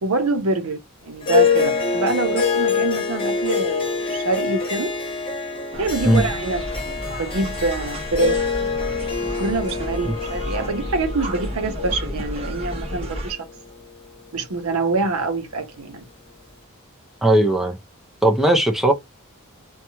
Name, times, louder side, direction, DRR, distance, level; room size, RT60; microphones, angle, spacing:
voice 1, 0.0-4.9 5.8-6.6 7.2-8.4 9.4-13.5 14.3-16.1, right 3 dB, 80° right, 0.8 m, -25 dB
Harp, 1.2-13.8, left 5 dB, 25° left, 1.1 m, -25 dB
sound 1, 5.7-13.3, equal, 30° right, 0.9 m, -32 dB
voice 2, 17.2-17.8 18.2-18.9, right 1 dB, ahead, 0.5 m, -17 dB
2.9 x 2.2 x 2.7 m
head